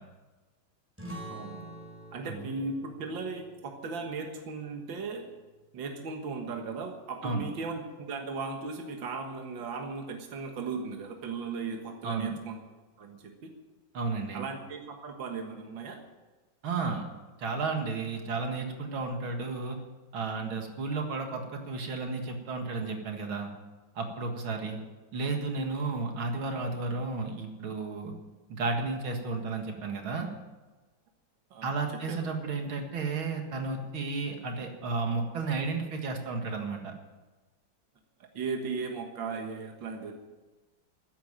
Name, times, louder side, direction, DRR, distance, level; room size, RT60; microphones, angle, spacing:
sound 1, 1.0-6.2, right 1 dB, 5° right, 4.1 m, -48 dB
voice 1, 1.3-1.7 2.1-5.2 5.7-12.6 13.0-13.5 14.3-16.0 24.5-24.6 31.5-32.2 38.3-40.1, right 4 dB, 70° right, 3 dB, 2.3 m, -37 dB
voice 2, 13.9-14.4 16.6-17.1 17.4-19.8 20.1-23.5 24.0-24.8 25.1-28.1 28.5-30.3 31.6-36.9, right 3 dB, 85° right, 4 dB, 2.6 m, -33 dB
14.0 x 10.5 x 8.9 m, 1.2 s
omnidirectional pair, 2.2 m